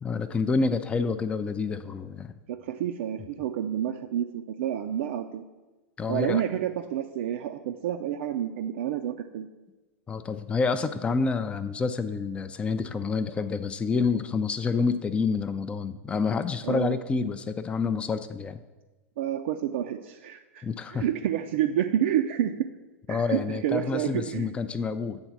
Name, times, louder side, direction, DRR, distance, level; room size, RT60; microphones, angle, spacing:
voice 1, 0.0-2.3 6.0-6.4 10.1-18.6 20.6-21.0 23.1-25.2, left 4 dB, 15° left, 10 dB, 0.4 m, -28 dB
voice 2, 2.5-5.4 6.1-9.5 16.6-17.0 19.2-20.6 20.9-22.5 23.1-24.5, right 10 dB, 55° right, 4 dB, 0.4 m, -29 dB
7.9 x 3.9 x 5.8 m, 1.2 s
figure-of-eight pair, 95°, 8 cm